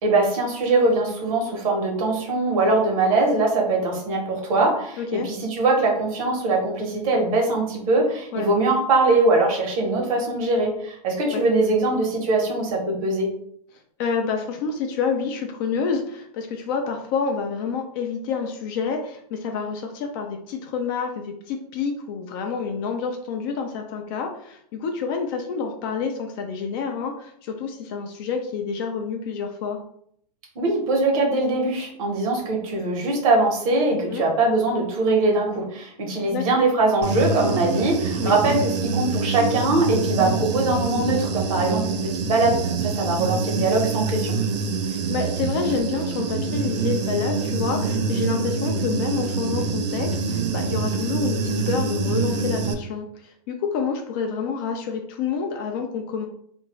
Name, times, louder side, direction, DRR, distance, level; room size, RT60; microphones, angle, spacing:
voice 1, 0.0-13.3 30.5-44.4, right 2 dB, 55° right, 1 dB, 1.1 m, -22 dB
voice 2, 5.0-5.3 8.3-8.5 11.2-11.4 14.0-29.8 34.1-34.3 36.3-36.5 38.2-38.4 43.3-43.4 44.9-56.3, left 5 dB, 35° left, 3 dB, 0.4 m, -28 dB
Human voice / Buzz, 37.0-52.7, right 4 dB, 75° right, 0.6 m, -25 dB
2.6 x 2.5 x 3.0 m, 0.67 s
hypercardioid pair, 140°, 21 cm